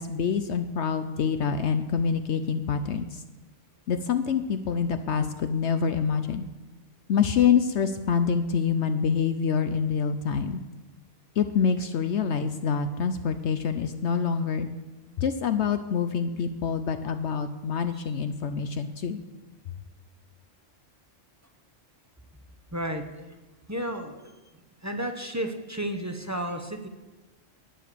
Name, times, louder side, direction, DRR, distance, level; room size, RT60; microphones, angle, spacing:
voice 1, 0.0-3.2 3.9-6.4 7.1-10.6 11.4-14.7 15.2-19.2, left 6 dB, 65° left, 9 dB, 0.9 m, -26 dB
voice 2, 22.7-23.2 23.7-24.4 24.8-26.9, right 1 dB, 15° right, 4 dB, 0.8 m, -32 dB
12.0 x 9.1 x 6.8 m, 1.1 s
omnidirectional pair, 1.3 m